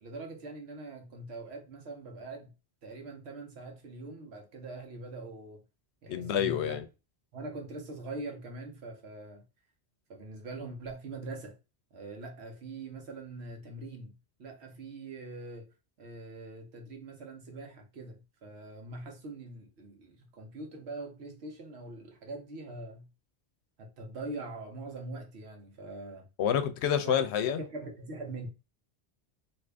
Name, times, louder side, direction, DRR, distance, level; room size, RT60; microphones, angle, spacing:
voice 1, 0.0-2.5 2.8-5.6 6.0-6.8 7.3-9.4 10.1-11.6 11.9-23.1 23.8-26.3 27.0-28.5, right 2 dB, 80° right, 1.1 m, -43 dB
voice 2, 6.1-6.8 26.4-27.6, left 9 dB, 85° left, 0.8 m, -28 dB
2.7 x 2.5 x 3.3 m
omnidirectional pair, 1.1 m